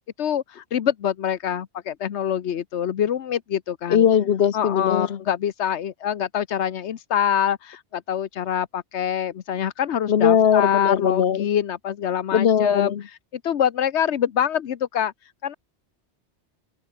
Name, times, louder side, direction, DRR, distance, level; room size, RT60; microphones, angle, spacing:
voice 1, 0.2-4.1 4.5-12.9 13.3-15.1 15.4-15.5, left 9 dB, 90° left, 1.2 m, -25 dB
voice 2, 3.9-5.2 10.1-11.5 12.3-13.0, left 8 dB, 65° left, 1.1 m, -19 dB
open air
omnidirectional pair, 1.1 m